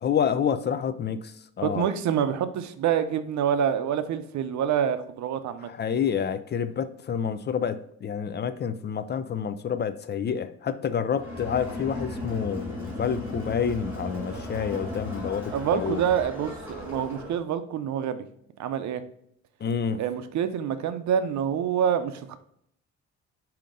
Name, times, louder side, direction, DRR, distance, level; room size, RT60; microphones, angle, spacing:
voice 1, 0.0-1.9 5.6-16.0 19.6-20.0, left 7 dB, 35° left, 12 dB, 0.4 m, -28 dB
voice 2, 1.6-5.7 15.5-18.2 18.6-19.0 20.0-22.4, right 8 dB, 70° right, 10 dB, 0.6 m, -27 dB
Crowd, 11.1-17.4, left 1 dB, 5° right, 1.9 m, -36 dB
5.2 x 2.8 x 3.6 m, 0.69 s
cardioid pair, 90°, 30 cm